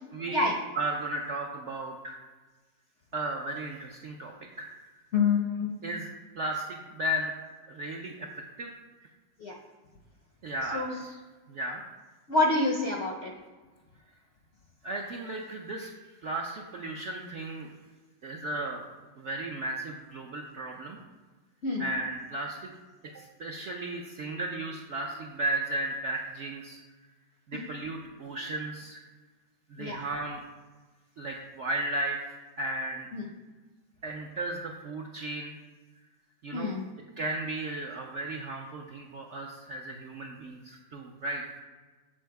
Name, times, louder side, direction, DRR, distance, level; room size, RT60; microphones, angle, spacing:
voice 1, 0.1-2.2 3.1-4.3 4.6-4.7 5.8-6.1 6.4-7.3 7.7-8.7 10.4-11.2 11.5-11.8 14.8-15.9 16.2-17.7 18.2-18.8 19.2-21.0 21.8-22.7 23.1-26.8 27.5-29.0 29.7-30.4 31.2-33.1 34.0-35.6 36.4-36.8 37.2-41.6, right 1 dB, 65° right, 0 dB, 0.7 m, -35 dB
voice 2, 5.1-5.7 9.4-9.5 10.7-10.9 12.3-13.3 21.6-21.8 29.8-30.0 33.1-33.2 36.5-36.8, left 3 dB, 60° left, 0 dB, 0.6 m, -27 dB
7.7 x 4.2 x 4.6 m, 1.3 s
omnidirectional pair, 1.9 m